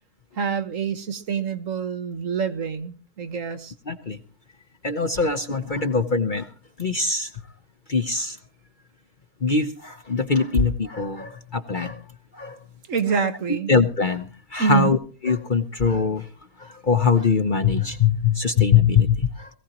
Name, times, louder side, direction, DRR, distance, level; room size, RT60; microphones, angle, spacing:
voice 1, 0.3-3.7 12.9-13.7 14.6-14.9, right 6 dB, 60° right, 9 dB, 1.6 m, -26 dB
voice 2, 3.9-4.2 4.8-6.5 6.8-7.3 7.9-8.4 9.4-12.0 12.4-12.6 13.7-15.0 15.2-16.3 16.6-19.5, left 5 dB, 40° left, 7 dB, 0.9 m, -22 dB
21.5 x 16.0 x 2.9 m, 0.35 s
omnidirectional pair, 1.5 m